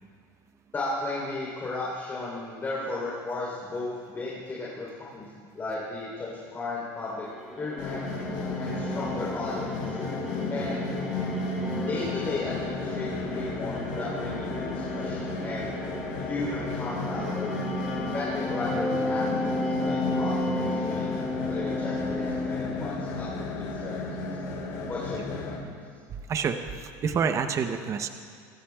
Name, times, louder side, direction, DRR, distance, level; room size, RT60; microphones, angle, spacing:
voice 1, 0.7-5.3 5.5-7.2 7.6-8.1 8.5-10.0 10.5-10.9 11.9-15.7 16.2-17.5 18.1-24.2 24.9-25.6, left 2 dB, 25° left, -6 dB, 3.5 m, -35 dB
sound 1, 7.2-23.5, left 1 dB, 5° right, 2.9 m, -34 dB
sound 2, 7.8-25.6, left 3 dB, 80° left, 3.8 m, -33 dB
voice 2, 26.3-28.1, right 6 dB, 35° right, 7 dB, 0.8 m, -28 dB
24.0 x 13.5 x 2.3 m, 2.1 s
supercardioid pair, 125°, 9 cm